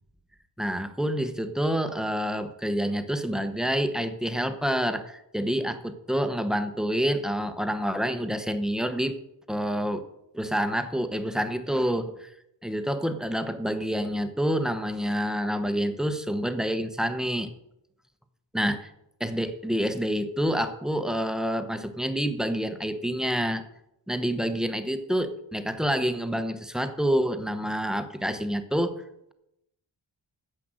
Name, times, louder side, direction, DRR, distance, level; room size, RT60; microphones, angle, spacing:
voice 1, 0.6-9.2 9.5-10.1 10.3-12.3 12.6-17.5 18.5-18.9 19.2-23.6 24.1-29.0, equal, ahead, 10 dB, 0.9 m, -28 dB
10.0 x 7.7 x 7.7 m, 0.84 s
wide cardioid pair, 100°, 46 cm